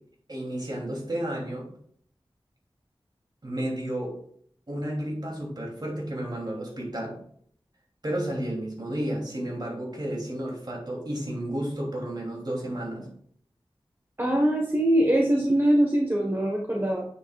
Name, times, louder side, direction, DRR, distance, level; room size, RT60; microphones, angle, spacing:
voice 1, 0.3-1.7 3.4-4.1 4.7-7.2 8.0-13.1, right 1 dB, 45° right, -1 dB, 3.0 m, -32 dB
voice 2, 14.2-17.1, right 1 dB, 25° right, -1 dB, 1.4 m, -22 dB
9.1 x 7.4 x 2.4 m, 0.63 s
wide cardioid pair, 60°, 10 cm